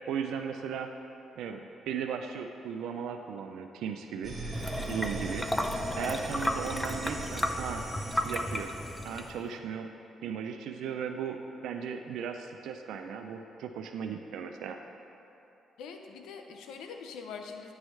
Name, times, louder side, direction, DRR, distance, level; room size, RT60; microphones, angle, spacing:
voice 1, 0.1-0.9 1.4-4.3 4.9-5.5 6.0-7.8 8.2-8.7 9.0-9.9 10.2-14.8, right 7 dB, 80° right, 5 dB, 0.3 m, -36 dB
sound 1, 4.2-9.3, right 2 dB, 35° right, 1.2 m, -40 dB
sound 2, 4.5-9.5, left 1 dB, 10° left, 0.4 m, -34 dB
voice 2, 15.8-17.7, left 5 dB, 85° left, 5 dB, 0.5 m, -43 dB
9.9 x 4.7 x 3.2 m, 2.8 s
cardioid pair, 90°, 0 cm